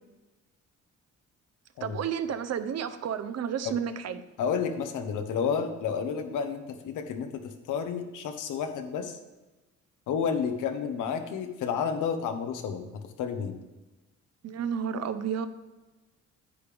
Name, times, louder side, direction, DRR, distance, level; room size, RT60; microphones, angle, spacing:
voice 1, 1.8-4.2 14.4-15.5, right 7 dB, 60° right, 11 dB, 0.8 m, -31 dB
voice 2, 4.4-9.2 10.1-12.9 13.2-13.6, left 6 dB, 85° left, 7 dB, 1.1 m, -31 dB
9.9 x 8.6 x 3.5 m, 1.1 s
cardioid pair, 90°, 30 cm